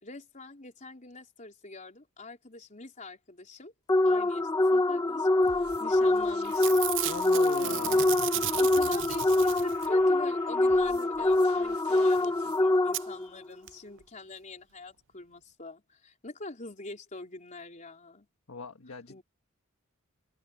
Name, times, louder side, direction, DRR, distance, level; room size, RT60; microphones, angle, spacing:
voice 1, 0.0-3.7 4.0-5.3 5.8-6.8 8.6-18.3 19.1-19.2, left 2 dB, 35° left, 4.0 m, -44 dB
sound 1, 3.9-13.3, left 2 dB, 15° left, 0.8 m, -25 dB
sound 2, 5.4-12.6, right 4 dB, 90° right, 3.6 m, -53 dB
Packing tape duct tape / Tearing, 5.9-6.2 6.4-10.0 12.0-12.1 12.2-12.3 12.9-13.0 13.7-13.8 14.0-14.1, right 16 dB, 60° right, 0.5 m, -34 dB
voice 2, 7.0-8.1 18.5-19.2, left 4 dB, 75° left, 1.5 m, -40 dB
open air
head